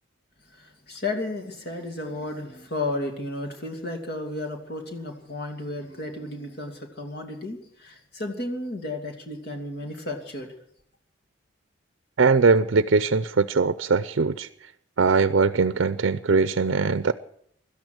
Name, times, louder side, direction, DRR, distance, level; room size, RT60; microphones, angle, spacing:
voice 1, 0.5-10.5, left 2 dB, 55° left, 4 dB, 2.6 m, -33 dB
voice 2, 12.2-14.5 15.0-17.1, right 4 dB, 70° right, 13 dB, 0.5 m, -21 dB
17.0 x 12.5 x 6.2 m, 0.68 s
head